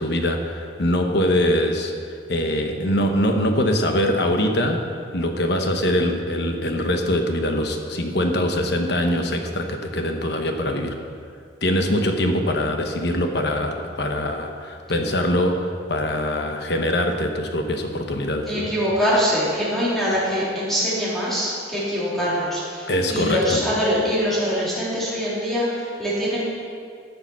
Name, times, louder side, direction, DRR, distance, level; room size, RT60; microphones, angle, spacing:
voice 1, 0.0-1.9 2.3-10.9 11.6-18.7 22.9-23.6, left 1 dB, 60° left, 4 dB, 1.1 m, -23 dB
voice 2, 18.5-26.4, equal, ahead, -9 dB, 3.4 m, -23 dB
12.5 x 6.8 x 6.1 m, 2.3 s
head